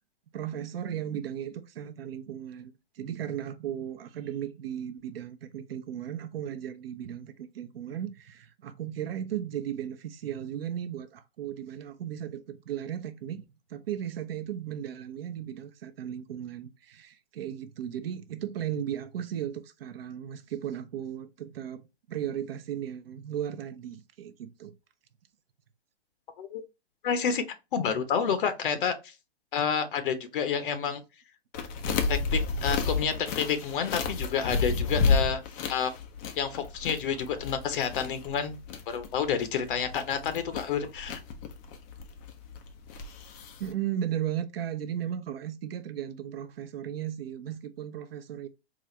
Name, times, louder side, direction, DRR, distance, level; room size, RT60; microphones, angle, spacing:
voice 1, 0.3-21.8 22.1-24.7 43.6-48.5, right 10 dB, 65° right, 0.7 m, -36 dB
voice 2, 27.0-27.4 27.7-29.1 29.5-31.0 32.1-35.4 35.7-35.9 36.4-38.6 38.9-41.2, left 7 dB, 55° left, 0.7 m, -29 dB
sound 1, 31.5-43.7, left 4 dB, 20° left, 0.3 m, -31 dB
4.1 x 2.5 x 3.0 m
hypercardioid pair, 120°, 32 cm